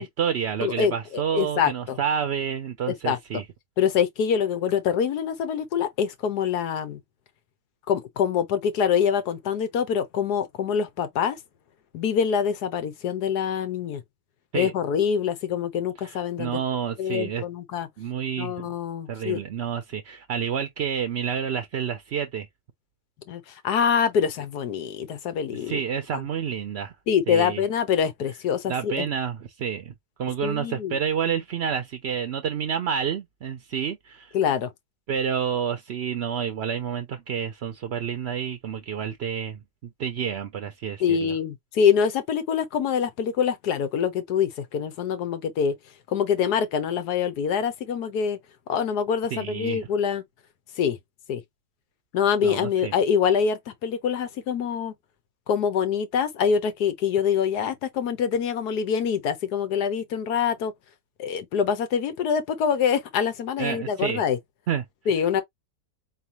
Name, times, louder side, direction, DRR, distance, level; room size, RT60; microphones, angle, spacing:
voice 1, 0.0-3.4 14.5-14.7 16.0-17.4 18.0-18.7 19.1-22.5 25.5-26.9 27.3-27.6 28.7-29.9 30.2-34.3 35.1-39.6 40.0-41.3 49.3-49.9 52.4-52.9 63.6-64.2 64.7-64.8, right 8 dB, 60° right, 0.7 m, -29 dB
voice 2, 0.6-2.0 2.9-3.2 3.8-7.0 7.9-11.4 11.9-14.0 14.5-16.6 17.0-17.9 18.4-19.4 23.3-25.8 26.1-26.2 27.1-29.1 30.4-31.0 34.3-34.7 41.0-45.7 46.1-48.4 48.7-50.2 50.8-51.0 51.3-51.4 52.1-54.9 55.5-60.7 61.2-64.4 65.1-65.4, left 7 dB, 90° left, 1.5 m, -25 dB
4.2 x 3.3 x 2.9 m
omnidirectional pair, 1.6 m